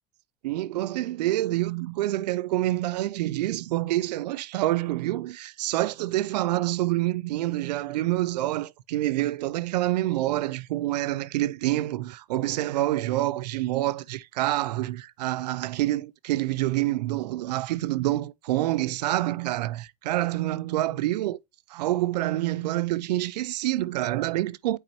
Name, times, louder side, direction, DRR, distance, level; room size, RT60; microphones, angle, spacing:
voice 1, 0.4-21.4 21.7-24.8, right 16 dB, 85° right, 0.4 m, -27 dB
7.8 x 4.4 x 2.8 m
hypercardioid pair, 100°, 20 cm